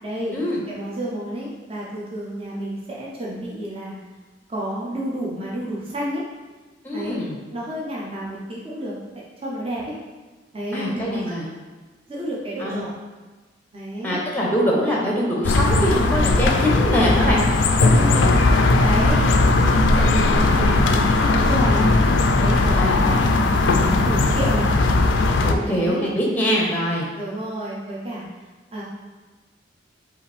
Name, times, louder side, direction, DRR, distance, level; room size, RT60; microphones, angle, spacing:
voice 1, 0.0-0.4 0.7-4.0 4.5-6.2 6.9-7.2 7.5-8.9 9.4-9.9 10.5-11.5 12.1-12.9 13.7-14.2 17.8-18.5 18.8-19.2 19.6-21.9 22.4-23.3 23.7-24.7 25.6-26.8 27.2-28.2 28.7-28.8, right 1 dB, 30° right, -6 dB, 0.6 m, -30 dB
voice 2, 6.8-7.4 10.7-11.5 12.6-12.9 14.0-17.4 18.9-19.3 22.7-23.0 25.4-27.1, equal, 10° left, -3 dB, 0.7 m, -23 dB
sound 1, 15.4-25.5, left 2 dB, 75° left, 0.4 m, -18 dB
5.4 x 2.5 x 3.3 m, 1.3 s
head